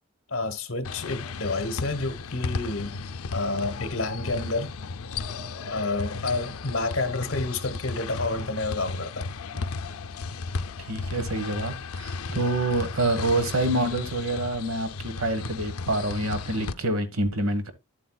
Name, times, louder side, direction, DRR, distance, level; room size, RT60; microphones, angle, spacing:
voice 1, 0.3-3.0 3.3-4.7 5.7-9.3, left 2 dB, 60° left, 1.1 m, -29 dB
sound 1, 0.8-16.7, left 4 dB, 90° left, 0.6 m, -35 dB
voice 2, 10.9-17.7, right 1 dB, 80° right, 1.4 m, -27 dB
10.5 x 7.7 x 2.3 m
head